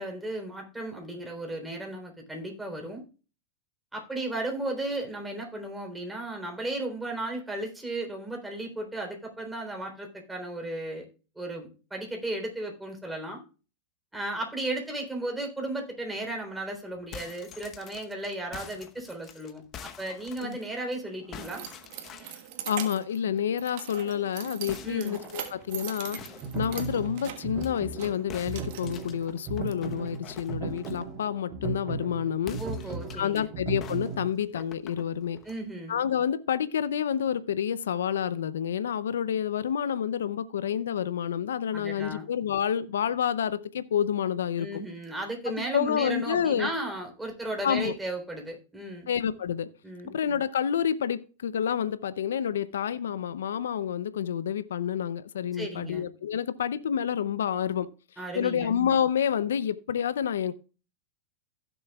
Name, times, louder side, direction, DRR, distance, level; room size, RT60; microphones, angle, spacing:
voice 1, 0.0-3.0 3.9-11.1 11.4-13.4 14.1-21.6 24.8-25.2 32.6-33.5 35.4-35.9 41.7-42.3 44.6-49.1 49.8-50.1 55.5-56.1 58.2-58.7, right 1 dB, 5° right, 2 dB, 3.6 m, -35 dB
sound 1, 16.9-21.0 21.3-22.5 24.7-27.7 28.3-31.1 32.4-33.4 33.8-35.6, left 8 dB, 35° left, 1.0 m, -46 dB
Keys jangling, 20.6-29.7, right 11 dB, 60° right, 1.4 m, -42 dB
voice 2, 22.7-26.2 26.5-32.6 33.2-35.4 35.9-44.7 45.5-46.7 47.6-47.9 49.1-49.7 50.1-57.9 58.3-60.5, left 8 dB, 80° left, 15 dB, 0.6 m, -29 dB
sound 2, 26.2-34.3, right 5 dB, 35° right, 3.2 m, -36 dB
16.0 x 7.0 x 2.3 m, 0.35 s
hypercardioid pair, 105°, 0 cm